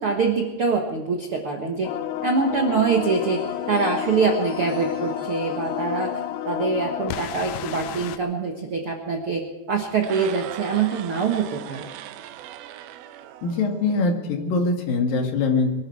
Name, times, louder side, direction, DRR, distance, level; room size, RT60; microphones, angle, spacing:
voice 1, 0.0-1.9 2.2-6.2 6.4-11.8, right 4 dB, 60° right, 2 dB, 1.4 m, -24 dB
sound 1, 1.8-8.2, left 12 dB, 85° left, 1.9 m, -30 dB
sound 2, 3.0-7.6, right 1 dB, 25° right, 4.4 m, -45 dB
sound 3, 10.0-14.1, right 11 dB, 80° right, 2.4 m, -39 dB
voice 2, 13.4-15.7, left 3 dB, 60° left, 2 dB, 3.5 m, -23 dB
23.5 x 12.5 x 4.7 m, 1.1 s
omnidirectional pair, 4.7 m